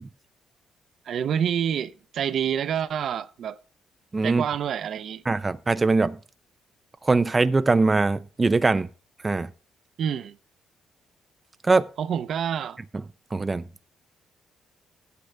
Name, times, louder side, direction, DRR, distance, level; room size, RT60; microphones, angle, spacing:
voice 1, 1.1-3.6 4.2-5.2 10.0-10.4 12.0-12.8, right 8 dB, 65° right, 0.7 m, -27 dB
voice 2, 4.1-4.4 5.3-6.2 7.0-8.9 9.2-9.5 11.6-11.9 13.3-13.6, right 3 dB, 25° right, 0.5 m, -21 dB
11.5 x 9.4 x 3.4 m
cardioid pair, 90°, 0 cm